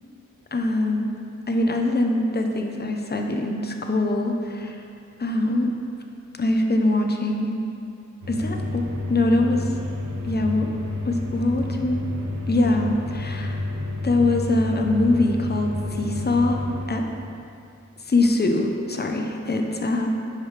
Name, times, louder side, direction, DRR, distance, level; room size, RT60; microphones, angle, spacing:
voice 1, 0.5-1.1 1.5-4.3 5.2-5.7 6.4-7.6 8.3-8.8 9.1-9.7 10.2-10.7 11.0-12.0 12.5-13.6 14.0-17.0 18.1-20.1, left 2 dB, 35° left, 3 dB, 0.7 m, -23 dB
sound 1, 8.2-16.9, left 2 dB, 80° right, 1.6 m, -30 dB
10.5 x 4.9 x 3.3 m, 2.5 s
wide cardioid pair, 75°, 30 cm